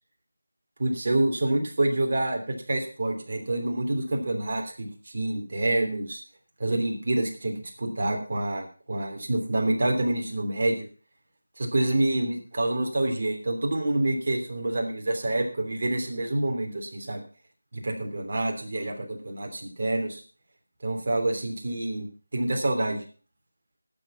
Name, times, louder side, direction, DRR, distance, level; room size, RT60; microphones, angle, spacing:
voice 1, 0.8-6.2 6.6-10.8 11.6-17.2 17.7-20.2 20.8-22.1 22.3-23.0, right 1 dB, 45° right, 2 dB, 3.1 m, -27 dB
12.0 x 8.0 x 6.1 m, 0.39 s
figure-of-eight pair, 170°, 0 cm